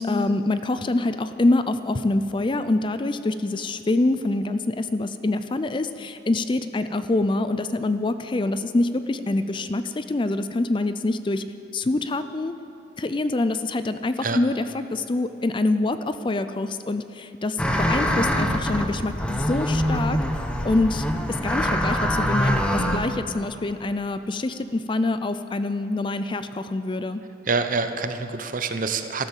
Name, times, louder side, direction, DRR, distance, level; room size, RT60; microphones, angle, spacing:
voice 1, 0.0-11.4 11.7-12.5 13.0-20.2 20.6-27.2, left 2 dB, 25° left, 11 dB, 0.4 m, -25 dB
sound 1, 17.6-23.0, equal, 5° left, 0.9 m, -24 dB
voice 2, 27.5-29.3, right 4 dB, 45° right, 8 dB, 0.8 m, -26 dB
13.5 x 12.5 x 7.3 m, 3.0 s
head